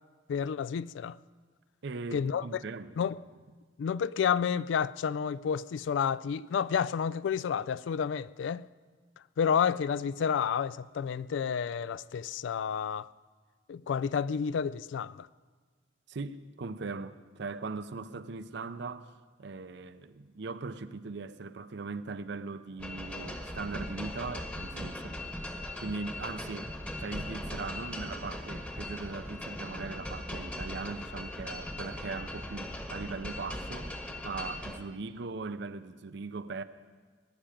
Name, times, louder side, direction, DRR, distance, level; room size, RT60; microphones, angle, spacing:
voice 1, 0.3-1.2 2.1-2.4 3.0-3.2 3.8-8.7 9.4-13.1 13.7-15.3, left 7 dB, 80° left, 0.3 m, -30 dB
voice 2, 1.8-3.0 16.1-19.1 19.4-25.2 25.8-26.7 27.0-36.6, right 4 dB, 70° right, 0.6 m, -39 dB
sound 1, 22.8-34.8, left 1 dB, 10° left, 1.1 m, -39 dB
20.0 x 10.0 x 5.1 m
head